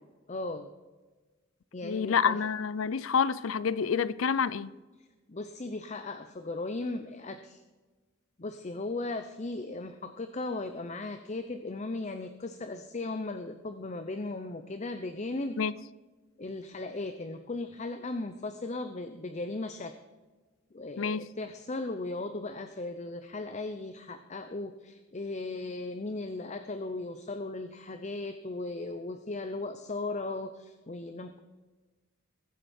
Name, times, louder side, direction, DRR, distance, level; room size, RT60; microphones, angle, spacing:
voice 1, 0.3-0.7 1.7-2.4 5.3-7.6 8.4-15.6 16.4-19.9 20.7-31.4, left 2 dB, 35° left, 0.7 m, -37 dB
voice 2, 1.8-4.7 15.6-15.7 21.0-21.2, left 6 dB, 85° left, 0.5 m, -28 dB
21.0 x 7.9 x 4.4 m
head